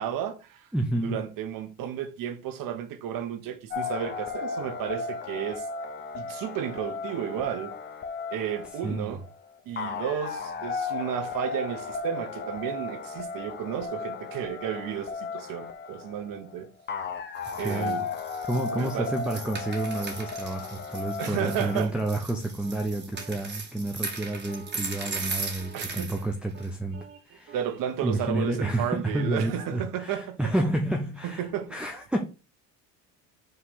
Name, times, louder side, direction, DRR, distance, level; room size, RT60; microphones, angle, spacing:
voice 1, 0.0-0.7 1.0-5.7 6.1-7.7 8.3-9.2 9.6-16.7 17.6-18.1 18.7-19.1 21.2-21.9 25.7-26.1 27.5-30.4 31.2-31.8, right 9 dB, 65° right, 1.2 m, -33 dB
voice 2, 0.7-1.2 8.8-9.1 17.6-18.0 18.5-27.6 28.0-32.3, right 1 dB, 5° right, 0.7 m, -30 dB
sound 1, 3.7-21.8, left 5 dB, 30° left, 0.9 m, -35 dB
sound 2, 17.4-26.2 26.6-26.7, right 4 dB, 30° right, 1.8 m, -38 dB
sound 3, 22.6-23.4 24.3-26.3 26.5-26.7 26.9-29.4, right 7 dB, 50° right, 1.3 m, -50 dB
5.7 x 3.2 x 5.5 m
cardioid pair, 130°, 35 cm